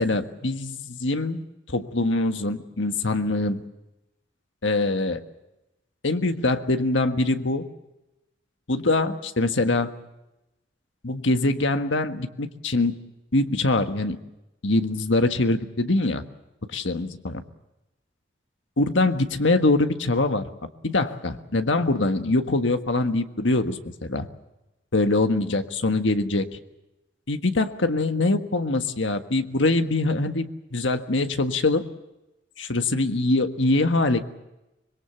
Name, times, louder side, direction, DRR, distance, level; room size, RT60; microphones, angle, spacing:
voice 1, 0.0-3.6 4.6-5.2 6.0-7.6 8.7-9.9 11.0-13.0 13.3-14.2 14.6-16.2 16.7-17.4 18.8-20.4 20.8-24.3 24.9-26.6 27.3-31.8 32.6-34.2, left 2 dB, 85° left, 7 dB, 1.5 m, -23 dB
25.0 x 22.0 x 7.0 m, 0.94 s
head